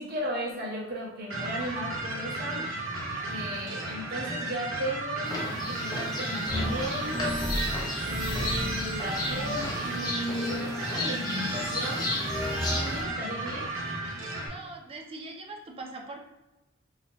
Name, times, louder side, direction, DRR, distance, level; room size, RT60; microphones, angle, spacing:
voice 1, 0.0-2.7 3.3-7.6 8.0-12.1 12.7-13.7, equal, 50° right, -3 dB, 0.9 m, -36 dB
sound 1, 1.3-14.5, right 2 dB, 85° right, 0.7 m, -34 dB
sound 2, 5.2-13.0, left 1 dB, 20° left, 0.5 m, -35 dB
sound 3, 6.4-13.1, equal, 10° right, 1.3 m, -34 dB
voice 2, 14.4-16.2, right 2 dB, 30° right, 1 dB, 0.5 m, -41 dB
3.6 x 2.8 x 2.5 m, 1.0 s
head